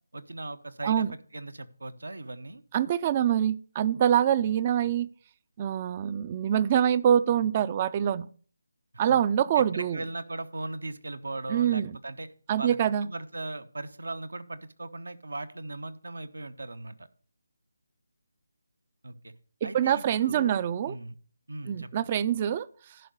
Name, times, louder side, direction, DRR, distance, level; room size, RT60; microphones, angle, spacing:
voice 1, 0.1-2.6 4.4-4.5 4.8-5.0 9.1-9.2 9.5-12.3 12.6-17.1 19.0-19.3 19.6-21.2 21.5-22.1, right 2 dB, 75° right, 12 dB, 1.0 m, -38 dB
voice 2, 2.7-5.1 5.6-8.3 9.0-10.0 11.5-11.9 12.5-13.1 19.6-20.9 21.7-22.7, right 9 dB, 25° right, 17 dB, 0.4 m, -25 dB
11.0 x 5.3 x 6.5 m, 0.44 s
figure-of-eight pair, 155°, 0 cm